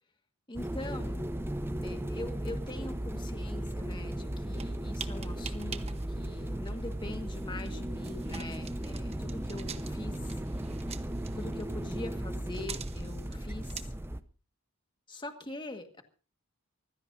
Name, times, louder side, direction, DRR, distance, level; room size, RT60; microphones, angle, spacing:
voice 1, 0.5-1.2 1.8-10.4 11.3-13.8 15.1-16.0, left 2 dB, 20° left, 5 dB, 1.7 m, -43 dB
sound 1, 0.5-14.2, right 1 dB, 10° right, 0.6 m, -36 dB
sound 2, 4.6-13.8, right 5 dB, 30° right, 1.0 m, -46 dB
24.5 x 16.0 x 2.7 m, 0.36 s
head